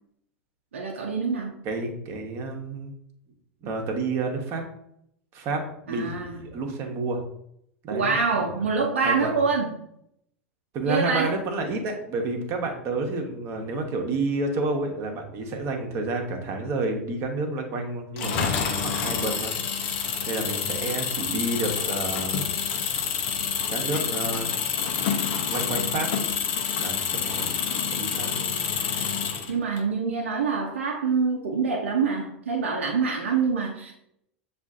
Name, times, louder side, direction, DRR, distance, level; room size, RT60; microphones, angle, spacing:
voice 1, 0.7-1.5 5.9-6.4 7.9-9.7 10.8-11.3 28.1-28.6 29.5-33.9, right 5 dB, 75° right, 0 dB, 0.6 m, -26 dB
voice 2, 1.6-2.9 3.6-4.6 5.3-7.2 7.8-8.5 9.0-9.3 10.7-19.5 20.3-22.4 23.7-24.5 25.5-26.1 26.8-27.5 27.9-28.3, right 3 dB, 45° right, 2 dB, 1.0 m, -30 dB
Engine, 18.2-29.8, left 7 dB, 55° left, 0.6 m, -28 dB
7.2 x 2.5 x 2.4 m, 0.74 s
figure-of-eight pair, 85°, 7 cm